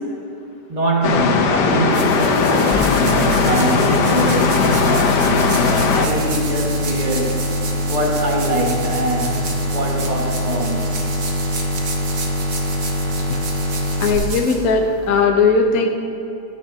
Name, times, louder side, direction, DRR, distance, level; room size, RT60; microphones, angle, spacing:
voice 1, 0.7-7.4 7.9-10.9, right 1 dB, 25° right, -2 dB, 1.7 m, -23 dB
sound 1, 1.0-6.1, left 5 dB, 85° left, 1.5 m, -18 dB
sound 2, 1.6-15.2, right 4 dB, 85° right, 2.0 m, -32 dB
sound 3, 2.7-14.1, left 1 dB, 30° left, 2.9 m, -23 dB
voice 2, 14.0-15.9, left 4 dB, 60° left, 2 dB, 1.3 m, -17 dB
15.5 x 13.5 x 2.8 m, 2.6 s
omnidirectional pair, 1.8 m